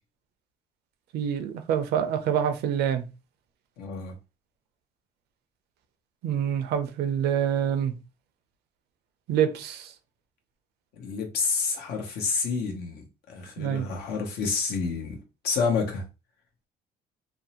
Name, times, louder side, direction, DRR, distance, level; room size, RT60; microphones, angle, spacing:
voice 1, 1.1-3.1 6.2-8.0 9.3-9.9 13.6-13.9, right 9 dB, 75° right, 0.5 m, -26 dB
voice 2, 3.8-4.2 10.9-15.2 15.4-16.0, left 4 dB, 70° left, 0.8 m, -29 dB
2.6 x 2.0 x 2.9 m
cardioid pair, 110°, 17 cm